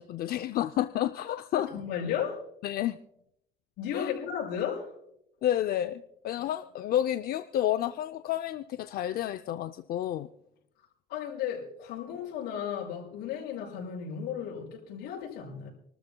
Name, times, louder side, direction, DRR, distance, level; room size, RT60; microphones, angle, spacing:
voice 1, 0.0-1.7 2.6-3.0 3.9-4.1 5.4-10.3, left 12 dB, 60° left, 9 dB, 0.5 m, -30 dB
voice 2, 1.5-2.4 3.8-4.9 11.1-15.7, left 8 dB, 85° left, -5 dB, 6.0 m, -34 dB
28.5 x 13.0 x 2.2 m, 0.78 s
cardioid pair, 110°, 17 cm